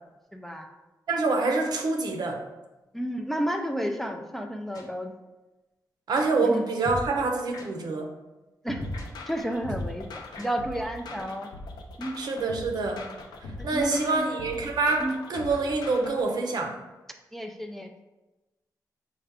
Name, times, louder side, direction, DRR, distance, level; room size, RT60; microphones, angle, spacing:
voice 1, 0.3-0.7 2.9-5.1 6.4-6.7 8.6-8.8 9.3-11.5 12.0-12.1 13.7-14.2 15.0-15.1 17.3-17.9, equal, 5° left, 4 dB, 0.3 m, -31 dB
voice 2, 1.1-2.4 6.1-8.1 11.1-11.2 12.2-13.1 13.6-16.8, right 3 dB, 70° right, 3 dB, 0.7 m, -26 dB
sound 1, 4.7-4.8 6.1-6.2 6.8-7.1 7.5-7.6 8.8-9.0 9.7-9.9 10.3-10.5, left 1 dB, 60° left, 0.9 m, -35 dB
sound 2, 8.7-16.3, left 2 dB, 90° left, 0.5 m, -41 dB
5.5 x 2.3 x 3.5 m, 1.1 s
wide cardioid pair, 110°, 7 cm